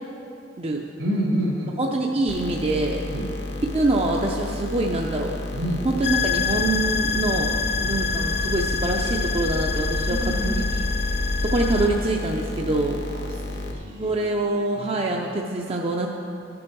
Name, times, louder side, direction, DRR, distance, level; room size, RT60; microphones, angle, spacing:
voice 1, 1.0-1.8 3.0-3.3 5.5-5.9 10.1-10.6 13.0-14.5 14.8-15.1, right 1 dB, 75° right, -2 dB, 1.9 m, -29 dB
voice 2, 1.8-3.0 3.7-5.3 5.8-7.6 7.8-10.8 11.4-13.0 14.0-16.1, right 2 dB, 35° right, 0 dB, 0.5 m, -25 dB
sound 1, 2.3-13.7, left 2 dB, 65° left, 0.9 m, -33 dB
sound 2, 6.0-11.9, left 4 dB, 35° left, 0.6 m, -25 dB
12.5 x 6.2 x 4.6 m, 2.6 s
head